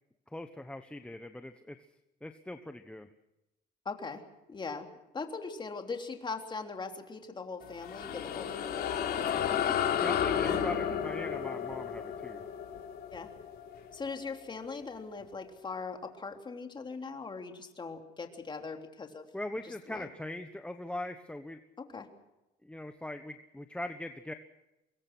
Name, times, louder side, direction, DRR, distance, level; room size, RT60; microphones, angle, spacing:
voice 1, 0.3-1.8 2.2-3.1 9.9-12.4 19.3-21.6 22.6-24.3, left 1 dB, 5° left, 7 dB, 1.2 m, -41 dB
voice 2, 3.8-4.2 4.5-4.9 5.1-9.5 13.1-13.3 13.9-19.3 19.6-20.1 21.8-22.1, left 4 dB, 25° left, 4 dB, 3.4 m, -40 dB
sound 1, 7.6-14.4, left 8 dB, 65° left, 4.1 m, -32 dB
25.5 x 22.0 x 6.2 m, 0.96 s
cardioid pair, 110°, 17 cm